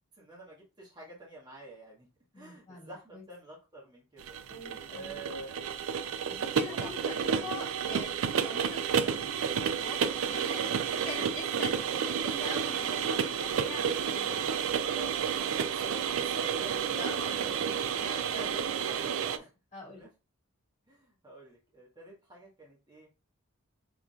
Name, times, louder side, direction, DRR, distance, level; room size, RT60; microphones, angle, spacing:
voice 1, 0.2-2.1 2.3-5.6 6.7-7.4 10.2-10.5 14.8-17.7 18.4-19.5 19.9-20.1 20.9-23.1, right 1 dB, 20° right, -4 dB, 1.4 m, -49 dB
voice 2, 2.3-3.2 4.5-5.2 6.3-10.6 10.9-14.5 16.8-17.5 18.0-18.6 19.7-20.1, left 2 dB, 30° left, -2 dB, 2.1 m, -44 dB
sound 1, 4.2-19.4, right 7 dB, 70° right, 0.4 m, -31 dB
5.8 x 3.6 x 2.4 m, 0.29 s
head